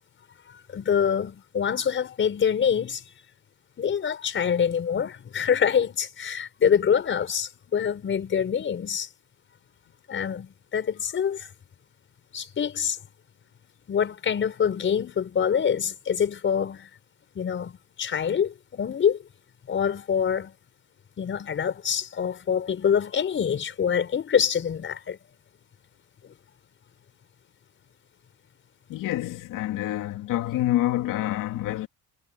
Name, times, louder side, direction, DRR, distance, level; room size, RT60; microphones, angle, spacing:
voice 1, 0.7-3.0 3.8-9.1 10.1-11.5 12.3-13.0 13.9-16.9 17.4-19.2 19.7-20.5 21.2-25.2, left 7 dB, 35° left, 5.4 m, -25 dB
voice 2, 28.9-31.9, left 14 dB, 70° left, 2.8 m, -27 dB
cardioid pair, 150°, 34 cm